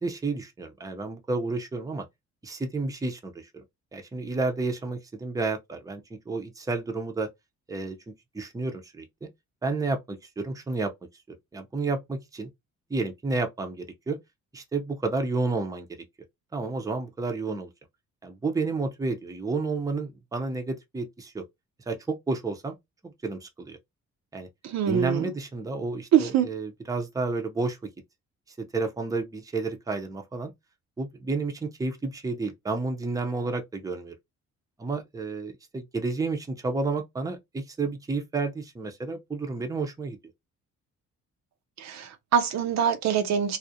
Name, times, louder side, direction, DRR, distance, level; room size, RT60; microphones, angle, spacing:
voice 1, 0.0-2.1 2.4-3.6 3.9-6.0 6.3-7.3 7.7-8.0 8.3-9.3 9.6-10.9 11.5-12.5 12.9-14.2 14.5-15.9 16.5-17.7 18.2-21.4 21.9-22.8 23.0-23.8 24.3-24.5 24.9-27.8 28.6-30.5 31.0-34.1 34.8-40.2, right 3 dB, 10° right, 0.5 m, -31 dB
voice 2, 24.6-25.2 26.1-26.5 41.8-43.6, right 8 dB, 65° right, 0.5 m, -24 dB
2.4 x 2.0 x 2.6 m
cardioid pair, 90°, 30 cm